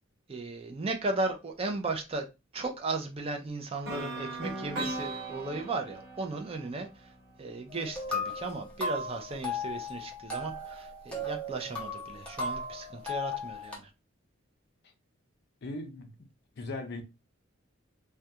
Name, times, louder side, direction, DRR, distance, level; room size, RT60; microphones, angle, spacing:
voice 1, 0.3-2.3 2.5-7.1 7.4-13.9, right 3 dB, 30° right, 0.4 m, -36 dB
sound 1, 3.9-7.8, right 2 dB, 65° right, 1.2 m, -39 dB
sound 2, 7.7-13.7, left 2 dB, 5° left, 0.7 m, -36 dB
voice 2, 15.6-16.3 16.6-17.0, left 2 dB, 55° left, 0.5 m, -38 dB
2.3 x 2.2 x 2.7 m
head